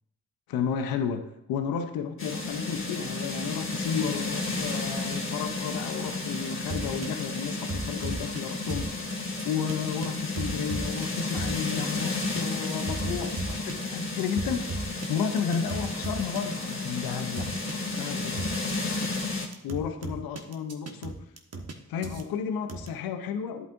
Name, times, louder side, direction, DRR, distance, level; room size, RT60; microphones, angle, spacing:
voice 1, 0.5-8.9 9.4-17.5 17.9-18.4 19.6-21.1 21.9-23.7, left 7 dB, 90° left, 7 dB, 0.7 m, -32 dB
sound 1, 2.2-19.5, left 3 dB, 35° left, 2.2 m, -32 dB
sound 2, 6.7-7.2 7.7-8.4 8.7-8.9 9.4-9.7 10.0-10.1 10.4-11.7 12.0-18.7 19.0-19.2 19.5-21.7 22.0-22.2 22.7-22.9, right 3 dB, 45° right, 1.4 m, -36 dB
10.5 x 8.4 x 2.6 m, 0.80 s
supercardioid pair, 40°, 35 cm